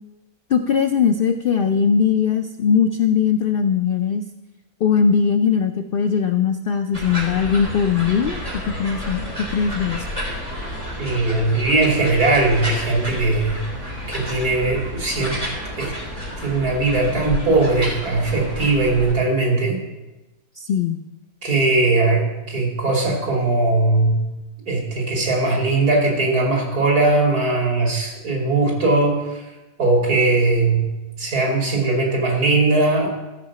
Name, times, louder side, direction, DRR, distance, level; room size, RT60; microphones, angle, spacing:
voice 1, 0.5-4.2 4.8-8.4 8.8-10.1 20.6-21.0, left 7 dB, 80° left, 7 dB, 0.5 m, -20 dB
sound 1, 6.9-19.1, equal, 25° right, 3.7 m, -30 dB
voice 2, 11.0-13.7 14.1-15.4 15.8-15.9 16.4-19.8 21.4-24.2 24.7-29.2 29.8-30.9 31.2-33.1, right 2 dB, 85° right, -1 dB, 3.4 m, -19 dB
13.5 x 5.7 x 7.3 m, 1.0 s
omnidirectional pair, 1.6 m